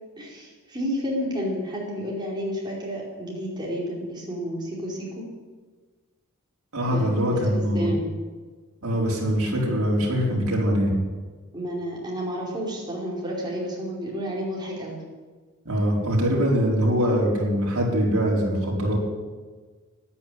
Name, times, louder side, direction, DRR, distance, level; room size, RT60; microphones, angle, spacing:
voice 1, 0.2-5.2 6.9-8.1 11.5-15.0, equal, 20° right, -4 dB, 4.8 m, -31 dB
voice 2, 6.7-7.9 8.8-10.9 15.6-19.0, equal, 70° right, -3 dB, 4.8 m, -23 dB
14.0 x 10.5 x 9.1 m, 1.4 s
head